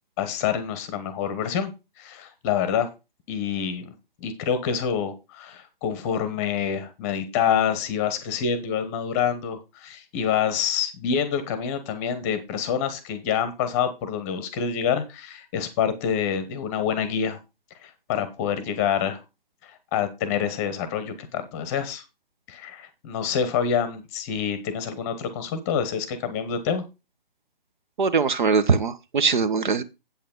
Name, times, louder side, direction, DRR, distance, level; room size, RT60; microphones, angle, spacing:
voice 1, 0.2-1.7 2.0-2.9 3.3-3.9 4.2-17.4 17.8-19.2 19.6-22.0 22.5-26.8, left 7 dB, 15° left, 1.0 m, -27 dB
voice 2, 28.0-29.8, right 5 dB, 55° right, 1.1 m, -21 dB
8.6 x 8.2 x 3.8 m
figure-of-eight pair, 150°, 29 cm